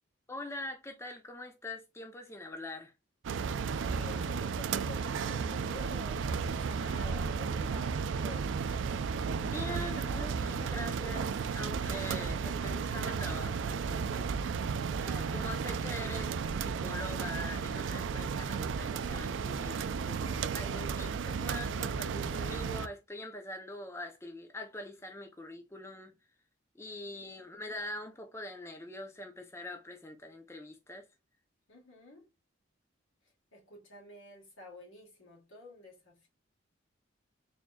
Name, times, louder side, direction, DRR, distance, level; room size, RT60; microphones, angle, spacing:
voice 1, 0.3-2.9 9.4-14.3 15.0-26.1 26.8-31.1, left 1 dB, 15° left, 0.5 m, -43 dB
sound 1, 3.2-22.9, right 5 dB, 65° right, 0.3 m, -34 dB
voice 2, 3.4-8.5 27.0-27.3 31.7-32.3 33.2-36.3, left 2 dB, 75° left, 2.2 m, -51 dB
4.2 x 3.5 x 2.2 m
head